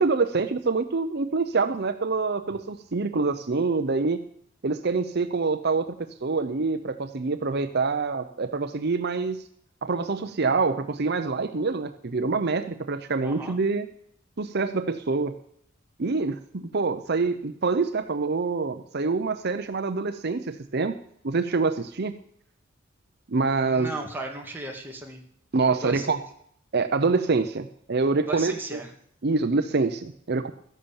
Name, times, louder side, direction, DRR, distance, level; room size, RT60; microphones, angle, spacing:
voice 1, 0.0-4.2 4.6-9.4 9.8-13.9 14.4-15.4 16.0-21.0 21.2-22.2 23.3-23.9 25.5-26.2 26.7-28.8 29.2-30.5, right 4 dB, 55° right, 9 dB, 0.7 m, -26 dB
voice 2, 13.2-13.6 23.6-25.2 25.8-26.2 28.3-28.9, right 2 dB, 10° right, 1 dB, 2.1 m, -35 dB
14.0 x 11.0 x 7.1 m, 0.68 s
head